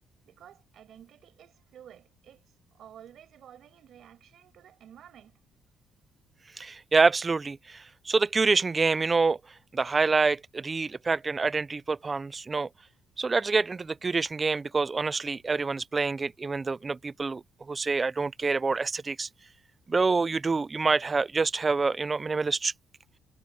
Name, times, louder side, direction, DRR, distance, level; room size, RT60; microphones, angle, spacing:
voice 1, 0.2-5.4, right 10 dB, 55° right, 6.5 m, -52 dB
voice 2, 6.6-9.4 9.7-12.7 13.2-17.4 17.7-19.3 19.9-22.7, right 4 dB, 20° right, 0.3 m, -26 dB
cardioid pair, 155°, 0 cm